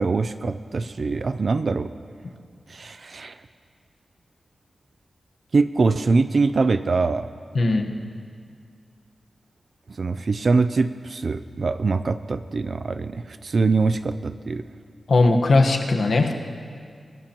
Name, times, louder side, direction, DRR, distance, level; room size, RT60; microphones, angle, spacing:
voice 1, 0.0-1.9 2.7-3.4 5.5-7.3 10.0-14.6, right 4 dB, 45° right, 11 dB, 0.4 m, -23 dB
voice 2, 7.5-7.9 15.1-16.3, left 2 dB, 60° left, 3 dB, 1.2 m, -18 dB
24.5 x 18.5 x 3.0 m, 2.2 s
wide cardioid pair, 165°, 0 cm